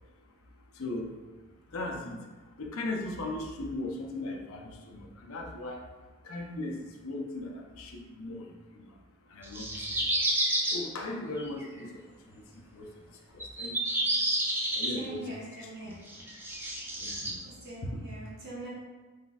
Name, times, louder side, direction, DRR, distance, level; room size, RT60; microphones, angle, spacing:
voice 1, 0.8-1.1 1.7-2.2 2.6-5.8 6.2-8.9 9.3-9.8 10.7-12.0 12.3-12.4 12.7-12.9 13.3-14.1 14.7-15.3 15.6-15.9 17.0-17.4 17.8-17.9, left 2 dB, 70° left, 1 dB, 0.6 m, -38 dB
sound 1, 9.4-10.8 11.4-11.6 13.4-15.0 15.5-15.6 16.1-17.3, right 1 dB, 10° right, 0.3 m, -30 dB
voice 2, 14.9-16.0 17.4-18.7, equal, 45° right, -7 dB, 1.3 m, -42 dB
4.4 x 4.0 x 2.3 m, 1.3 s
head